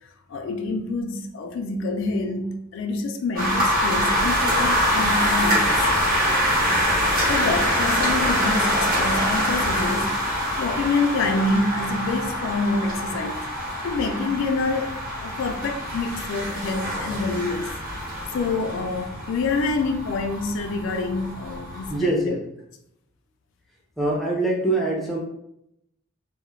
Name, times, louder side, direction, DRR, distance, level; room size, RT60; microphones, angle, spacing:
voice 1, 0.3-5.8 7.3-10.2 10.6-13.4 13.8-17.7 18.3-22.3, left 3 dB, 65° left, 5 dB, 0.3 m, -27 dB
sound 1, 3.3-22.0, equal, 45° right, 0.8 m, -24 dB
voice 2, 21.9-22.4 24.0-25.2, right 2 dB, ahead, -3 dB, 0.4 m, -23 dB
2.3 x 2.0 x 3.0 m, 0.78 s
head